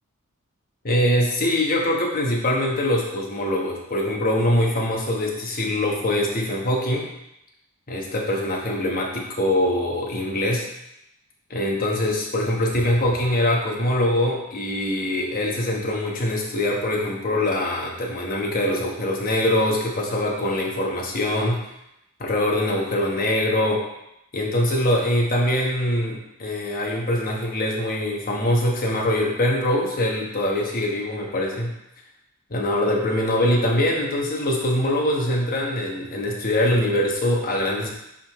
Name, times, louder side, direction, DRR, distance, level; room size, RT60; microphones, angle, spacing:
voice 1, 0.8-7.1 7.9-10.6 11.5-21.6 22.2-23.8 24.3-31.7 32.5-37.9, left 1 dB, 40° left, -1 dB, 1.2 m, -23 dB
10.0 x 3.8 x 3.1 m, 0.86 s
head